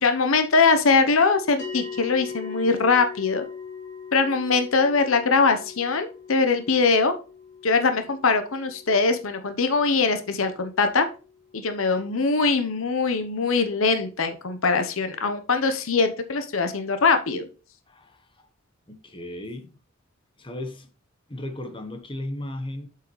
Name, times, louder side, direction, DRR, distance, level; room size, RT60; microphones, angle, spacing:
voice 1, 0.0-3.5 4.1-7.1 7.6-11.1 11.5-17.5, left 4 dB, 85° left, 0.9 m, -22 dB
sound 1, 1.6-12.1, left 5 dB, 60° left, 2.8 m, -41 dB
voice 2, 17.9-18.5 18.9-19.8 20.4-20.9 21.3-22.9, left 1 dB, 25° left, 1.2 m, -35 dB
7.7 x 5.6 x 3.2 m
head